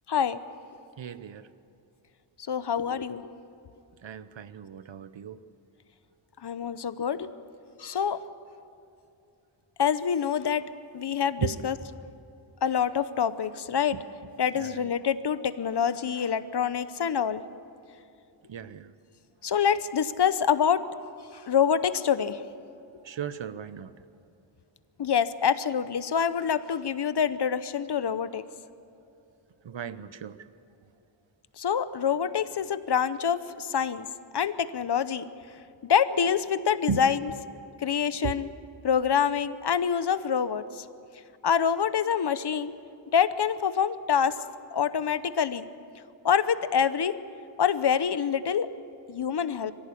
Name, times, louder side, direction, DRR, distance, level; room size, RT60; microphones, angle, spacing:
voice 1, 0.1-0.4 2.5-3.3 6.4-7.3 7.8-8.2 9.8-10.6 10.9-11.8 12.6-14.0 14.4-17.4 19.4-20.8 21.3-22.4 25.0-28.4 31.6-34.1 34.3-35.3 35.8-37.3 37.8-38.5 38.8-40.9 41.4-42.7 43.1-44.4 44.7-45.7 46.2-47.1 47.6-48.7 49.1-49.7, left 7 dB, 60° left, 0.9 m, -26 dB
voice 2, 1.0-1.5 4.0-5.4 11.4-11.6 13.9-14.0 14.6-14.9 18.5-18.9 23.0-23.9 29.6-30.4 36.9-37.0 38.2-38.4, right 7 dB, 70° right, 0.9 m, -35 dB
23.5 x 15.5 x 8.6 m
wide cardioid pair, 115°, 46 cm